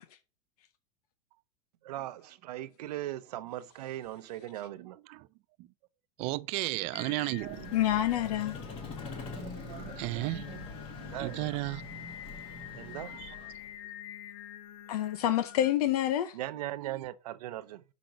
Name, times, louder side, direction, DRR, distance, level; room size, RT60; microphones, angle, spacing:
voice 1, 1.8-5.0 11.1-11.5 12.7-13.2 16.3-17.8, right 14 dB, 90° right, 0.8 m, -39 dB
voice 2, 4.8-5.3 5.6-5.7 6.2-7.8 9.3-10.7 11.0-11.8 13.1-13.3 16.8-17.0, right 20 dB, 35° right, 0.4 m, -35 dB
Singing, 6.9-15.7, left 12 dB, 45° left, 1.2 m, -48 dB
Vehicle, 7.4-13.8, left 3 dB, 30° left, 1.5 m, -44 dB
voice 3, 7.7-8.6 14.9-16.4, left 12 dB, 80° left, 0.7 m, -27 dB
6.0 x 5.2 x 5.1 m
supercardioid pair, 165°, 19 cm